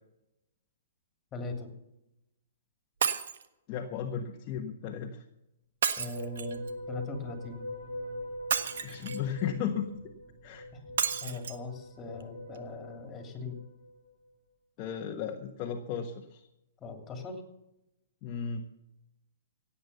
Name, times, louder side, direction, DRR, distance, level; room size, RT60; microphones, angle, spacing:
voice 1, 1.3-1.7 6.0-6.6 6.9-7.7 10.7-10.8 11.2-13.6 16.8-17.4, left 3 dB, 20° left, 5 dB, 2.9 m, -40 dB
Shatter, 3.0-3.5 5.8-6.7 8.5-9.3 11.0-11.6 12.2-12.3 12.6-12.7, right 7 dB, 70° right, 1.4 m, -31 dB
voice 2, 3.7-5.2 8.8-10.1 10.4-10.7 14.8-16.4 18.2-18.7, left 8 dB, 35° left, 2 dB, 1.3 m, -35 dB
sound 1, 6.1-14.1, equal, 40° right, 6.2 m, -43 dB
16.5 x 8.6 x 6.8 m, 0.89 s
hypercardioid pair, 145°, 0 cm